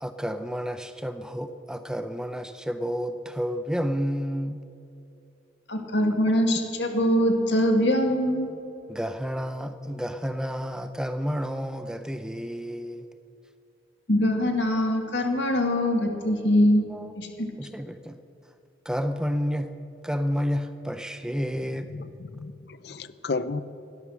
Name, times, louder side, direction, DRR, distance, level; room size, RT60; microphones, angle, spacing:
voice 1, 0.0-4.6 8.9-13.1 16.9-17.1 17.6-18.2 18.9-19.7 20.0-21.9, equal, 5° right, 9 dB, 0.5 m, -30 dB
voice 2, 5.7-8.5 14.1-16.8 17.2-17.3, equal, 75° left, 3 dB, 2.2 m, -23 dB
voice 3, 21.9-23.6, left 3 dB, 60° left, 14 dB, 0.6 m, -33 dB
17.0 x 11.0 x 6.3 m, 2.9 s
head